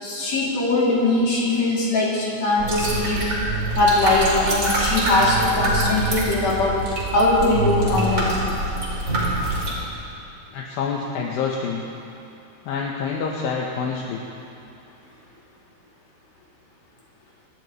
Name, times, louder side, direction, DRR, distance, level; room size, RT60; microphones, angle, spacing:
voice 1, 0.0-3.3 3.8-6.8 7.1-8.3, left 2 dB, 45° left, -6 dB, 3.6 m, -21 dB
sound 1, 2.6-9.7, right 2 dB, 25° right, 4.1 m, -24 dB
voice 2, 10.5-11.9 12.7-14.2, left 5 dB, 75° left, -1 dB, 2.4 m, -27 dB
26.5 x 12.5 x 3.1 m, 2.7 s
omnidirectional pair, 5.0 m